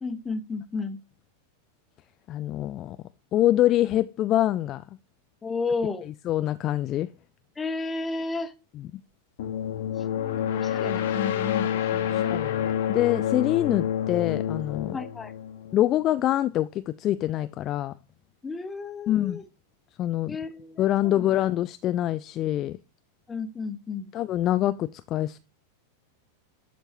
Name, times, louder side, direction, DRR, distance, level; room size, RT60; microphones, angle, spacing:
voice 1, 0.0-1.0 5.4-6.1 7.6-8.5 10.1-12.4 14.9-15.3 18.4-19.4 20.3-21.3 23.3-24.1, left 4 dB, 15° left, 1.1 m, -33 dB
voice 2, 2.3-3.0 3.3-4.8 6.3-7.1 10.8-11.0 12.1-15.0 15.7-17.9 19.1-19.4 20.0-20.4 20.8-22.8 24.1-25.4, left 13 dB, 35° left, 0.3 m, -25 dB
sound 1, 9.4-16.1, left 10 dB, 55° left, 1.1 m, -28 dB
11.5 x 4.4 x 2.7 m
figure-of-eight pair, 90°, 0 cm